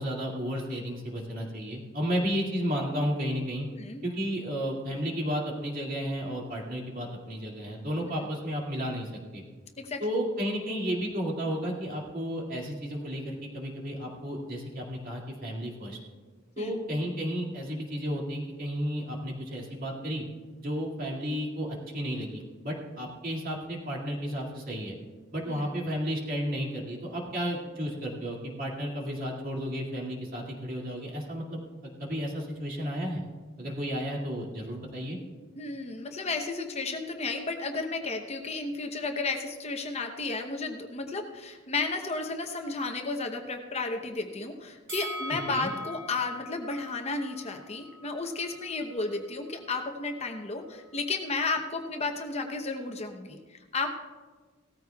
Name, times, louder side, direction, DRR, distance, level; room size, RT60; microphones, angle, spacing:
voice 1, 0.0-3.7 4.0-9.4 10.0-16.0 16.6-20.2 20.6-25.0 25.3-33.2 33.6-35.2 45.3-45.7, equal, 45° right, -2 dB, 2.3 m, -33 dB
voice 2, 35.6-53.9, left 3 dB, 30° left, 4 dB, 0.9 m, -33 dB
Bell, 44.9-48.1 48.4-48.5, equal, 85° right, 3.2 m, -41 dB
17.5 x 14.0 x 2.3 m, 1.4 s
head